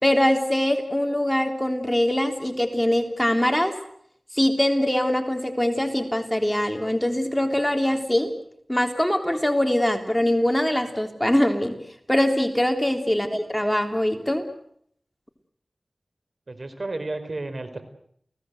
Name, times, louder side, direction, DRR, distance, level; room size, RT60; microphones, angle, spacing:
voice 1, 0.0-3.7 4.3-8.3 8.7-11.8 12.1-14.4, left 1 dB, 10° left, 5 dB, 3.5 m, -23 dB
voice 2, 16.5-17.8, right 2 dB, 60° right, 9 dB, 4.4 m, -32 dB
30.0 x 18.5 x 8.0 m, 0.68 s
wide cardioid pair, 50°, 0 cm